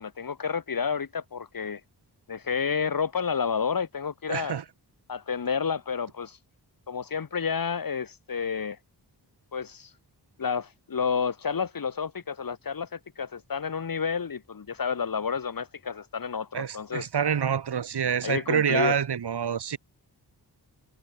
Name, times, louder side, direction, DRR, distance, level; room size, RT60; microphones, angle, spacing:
voice 1, 0.0-1.8 2.3-4.6 5.1-6.4 6.9-8.8 9.5-9.9 10.4-17.1 18.2-19.0, left 6 dB, 60° left, 7.2 m, -30 dB
voice 2, 4.3-4.6 16.5-19.8, right 7 dB, 80° right, 4.3 m, -27 dB
wide cardioid pair, 155°, 39 cm